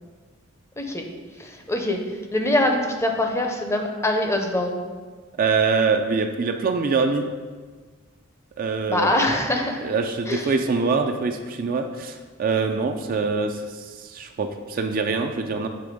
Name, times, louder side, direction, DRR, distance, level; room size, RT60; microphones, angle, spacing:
voice 1, 1.4-2.0 2.3-4.9 8.9-9.9 10.3-10.5, left 1 dB, 15° left, 3 dB, 0.5 m, -23 dB
voice 2, 5.4-7.3 8.6-9.1 9.8-15.7, right 4 dB, 40° right, 6 dB, 0.3 m, -24 dB
6.8 x 3.4 x 5.0 m, 1.5 s
head